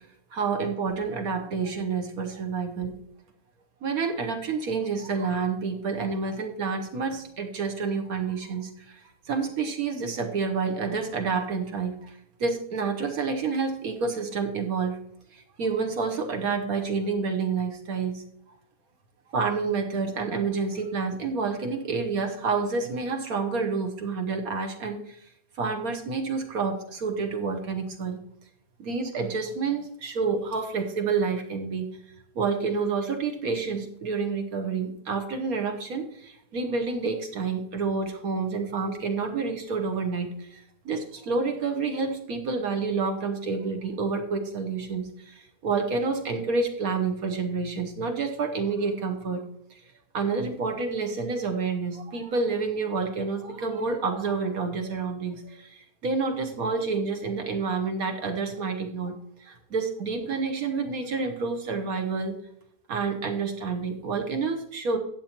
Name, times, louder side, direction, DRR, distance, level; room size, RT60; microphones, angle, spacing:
voice 1, 0.3-3.0 3.8-15.0 15.3-18.2 19.3-25.3 25.6-28.2 28.8-31.9 32.3-49.5 50.1-59.1 59.4-62.4 62.9-65.0, right 4 dB, 70° right, 5 dB, 1.4 m, -29 dB
14.5 x 8.3 x 3.0 m, 0.73 s
omnidirectional pair, 1.6 m